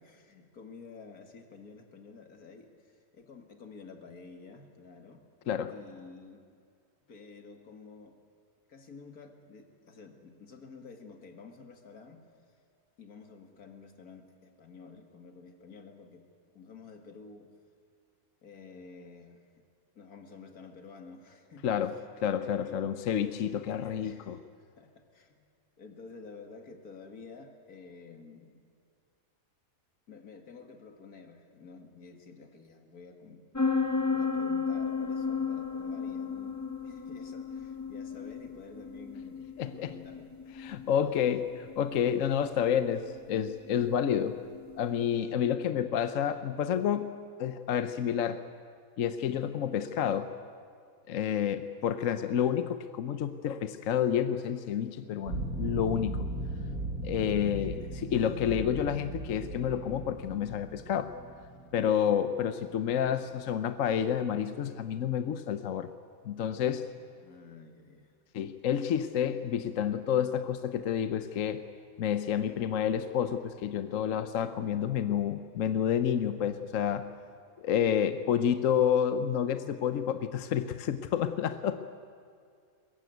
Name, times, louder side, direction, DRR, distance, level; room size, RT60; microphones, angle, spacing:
voice 1, 0.0-5.2 5.7-6.4 7.1-8.2 8.7-12.2 13.0-16.3 16.5-17.5 18.4-19.6 19.9-21.8 22.4-24.5 24.8-25.4 25.8-28.6 30.1-33.8 34.1-36.6 36.8-39.5 39.8-40.8 43.8-43.9 44.9-45.0 45.3-45.5 56.7-56.8 57.3-58.0 67.2-68.2, left 4 dB, 85° left, 5 dB, 2.5 m, -51 dB
voice 2, 22.2-24.4 39.6-39.9 40.6-44.4 44.8-47.1 47.4-48.4 49.0-50.3 51.1-56.3 57.0-61.1 61.7-65.9 66.2-66.9 68.3-71.6 72.0-77.1 77.6-81.8, left 9 dB, 65° left, 10 dB, 1.1 m, -29 dB
sound 1, 33.5-45.1, left 5 dB, 15° left, 1.2 m, -34 dB
sound 2, 55.3-62.9, right 2 dB, 80° right, 2.4 m, -38 dB
22.0 x 21.5 x 9.3 m, 2.3 s
omnidirectional pair, 1.5 m